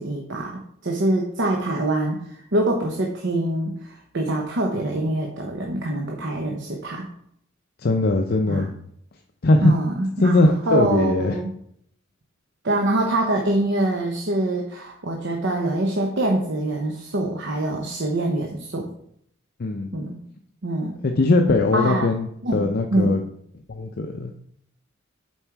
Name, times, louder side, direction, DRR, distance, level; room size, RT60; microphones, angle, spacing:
voice 1, 0.0-7.1 8.5-8.7 9.6-10.4 10.7-11.5 12.6-18.9 19.9-20.2 20.6-21.0 21.7-22.1 22.4-22.6 22.9-23.1, right 1 dB, 60° right, 1 dB, 0.9 m, -24 dB
voice 2, 7.8-8.7 9.4-9.7 10.2-11.4 19.6-19.9 21.0-22.3 22.5-23.2 23.7-24.4, left 2 dB, 50° left, 3 dB, 0.5 m, -20 dB
7.3 x 4.5 x 4.6 m, 0.69 s
head